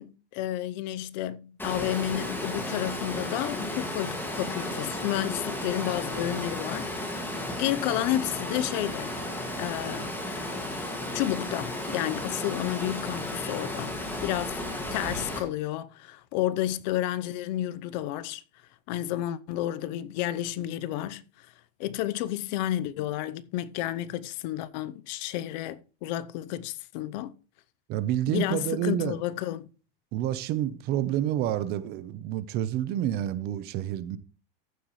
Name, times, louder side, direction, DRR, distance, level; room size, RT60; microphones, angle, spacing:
voice 1, 0.0-9.1 9.6-10.1 11.1-14.7 14.9-18.4 18.9-21.5 21.8-27.3 28.3-29.7, left 13 dB, 45° left, 0.7 m, -31 dB
Water, 1.6-15.4, left 1 dB, 5° left, 2.0 m, -34 dB
voice 2, 27.9-29.2 30.1-34.2, right 12 dB, 35° right, 0.8 m, -29 dB
14.5 x 8.0 x 3.1 m
supercardioid pair, 165°, 30 cm